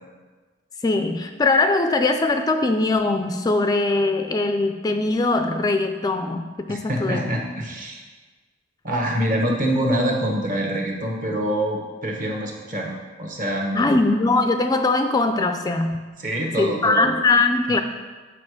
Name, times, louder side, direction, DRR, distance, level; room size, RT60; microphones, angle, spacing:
voice 1, 0.8-7.2 13.7-16.0 16.6-17.8, left 3 dB, 20° left, 6 dB, 0.3 m, -21 dB
voice 2, 6.7-8.0 8.8-14.0 16.2-17.1, right 1 dB, 45° right, 0 dB, 1.4 m, -25 dB
8.6 x 4.8 x 4.9 m, 1.3 s
head